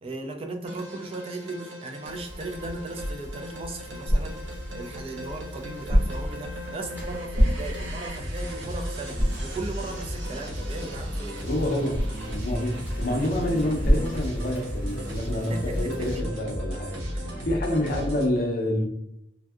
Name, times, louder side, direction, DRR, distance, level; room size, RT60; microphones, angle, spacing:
voice 1, 0.0-11.4 15.5-16.4 16.7-17.3, right 2 dB, 30° right, 5 dB, 0.3 m, -37 dB
sound 1, 0.7-18.3, equal, 85° right, 0.8 m, -35 dB
Bicycle, 2.0-16.2, equal, 10° right, 0.8 m, -40 dB
sound 2, 3.2-14.9, equal, 50° right, 1.2 m, -30 dB
voice 2, 11.4-17.0 17.5-18.9, left 1 dB, 50° left, 2 dB, 0.5 m, -28 dB
3.3 x 2.6 x 2.3 m, 0.81 s
head